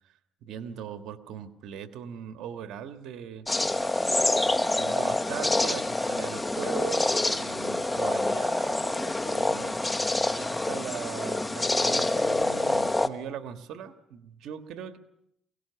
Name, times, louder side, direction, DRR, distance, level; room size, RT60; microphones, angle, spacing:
voice 1, 0.4-3.5 4.8-9.8 10.4-15.0, right 8 dB, 85° right, 8 dB, 1.4 m, -39 dB
sound 1, 3.5-13.1, left 2 dB, 15° left, 1.1 m, -27 dB
23.0 x 18.0 x 6.9 m, 0.75 s
cardioid pair, 90°, 0 cm